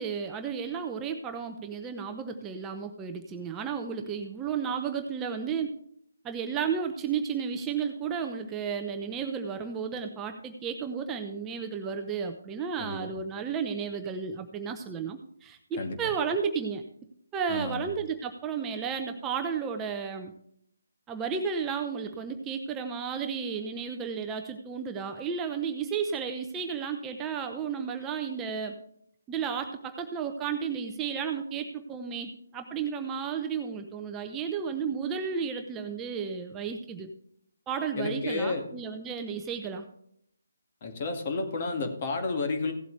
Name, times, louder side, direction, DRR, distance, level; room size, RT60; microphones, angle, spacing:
voice 1, 0.0-5.7 6.2-16.8 17.3-20.3 21.1-28.8 29.3-37.1 37.7-39.9, right 6 dB, 15° right, 5 dB, 0.8 m, -33 dB
voice 2, 12.8-13.1 15.8-16.0 17.5-17.8 38.0-38.7 40.8-42.7, left 3 dB, 40° left, 4 dB, 2.1 m, -31 dB
16.5 x 8.0 x 3.3 m, 0.69 s
figure-of-eight pair, 150°, 0 cm